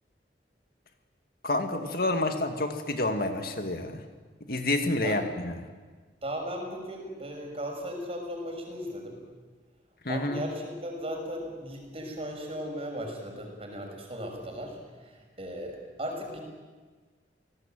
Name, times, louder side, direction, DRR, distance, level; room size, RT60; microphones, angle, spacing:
voice 1, 1.4-4.0 4.5-5.6 10.0-10.4, left 2 dB, 55° left, 6 dB, 2.3 m, -29 dB
voice 2, 6.2-9.2 10.1-16.4, equal, 35° right, 2 dB, 6.2 m, -37 dB
29.5 x 18.5 x 9.2 m, 1.4 s
head